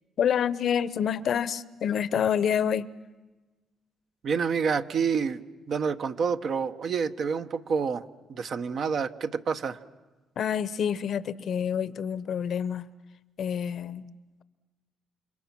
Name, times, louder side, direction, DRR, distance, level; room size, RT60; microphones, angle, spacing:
voice 1, 0.2-2.9 10.4-12.9 13.4-14.1, left 8 dB, 65° left, 0.8 m, -27 dB
voice 2, 4.2-5.4 5.7-8.0 8.3-9.8, right 6 dB, 60° right, 1.0 m, -28 dB
29.5 x 26.5 x 6.0 m
cardioid pair, 90°, 0 cm